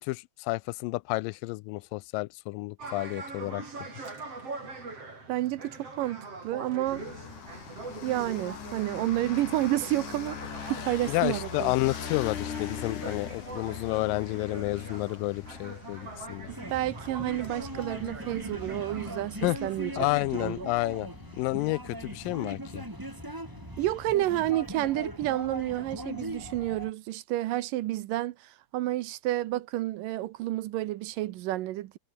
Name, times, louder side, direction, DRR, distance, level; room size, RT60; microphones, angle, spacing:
voice 1, 0.0-3.6 11.1-16.5 19.4-19.6 20.0-21.1 21.4-22.9, left 23 dB, 80° left, 2.2 m, -30 dB
sound 1, 2.8-20.2, right 3 dB, 40° right, 7.3 m, -43 dB
voice 2, 5.3-7.0 8.0-11.8 16.7-20.1 20.3-20.7 23.8-32.0, right 15 dB, 80° right, 2.4 m, -30 dB
sound 2, 6.8-26.7, left 8 dB, 60° left, 4.0 m, -43 dB
sound 3, 16.5-26.9, right 1 dB, 5° right, 3.0 m, -40 dB
omnidirectional pair, 4.1 m